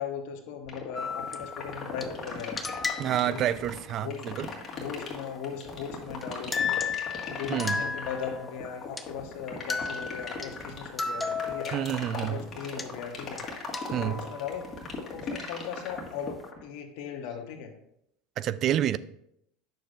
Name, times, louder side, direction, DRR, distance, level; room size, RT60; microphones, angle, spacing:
voice 1, 0.0-2.6 3.3-3.5 4.0-6.8 7.3-11.7 12.1-13.4 13.9-14.7 15.1-17.7, left 7 dB, 65° left, 1.1 m, -38 dB
sound 1, 0.7-16.6, left 5 dB, 40° left, 1.7 m, -38 dB
sound 2, 0.9-2.1 2.6-3.5 6.2-6.3 6.5-8.6 9.0-9.1 9.7-12.1 12.8-12.9 13.4-13.5 13.7-14.8, left 5 dB, 15° left, 0.6 m, -34 dB
voice 2, 3.0-4.5 7.5-7.8 11.7-12.4 13.9-14.2 18.4-19.0, right 11 dB, 50° right, 0.3 m, -28 dB
9.2 x 6.6 x 2.5 m
hypercardioid pair, 85°, 0 cm